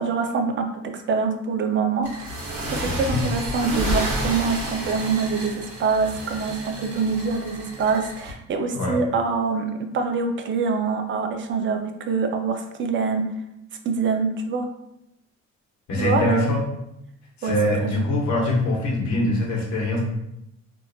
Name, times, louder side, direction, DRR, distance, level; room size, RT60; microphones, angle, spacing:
voice 1, 0.0-2.3 2.7-13.3 13.8-14.7 16.0-16.5 17.4-17.6 17.8-18.0, right 5 dB, 40° right, 6 dB, 0.4 m, -25 dB
sound 1, 2.0-8.3, right 1 dB, 70° right, 0.9 m, -30 dB
voice 2, 2.8-3.2 8.7-9.0 15.9-16.6 17.4-20.0, left 1 dB, 70° left, -3 dB, 0.9 m, -23 dB
2.7 x 2.1 x 2.5 m, 0.83 s
cardioid pair, 90°, 30 cm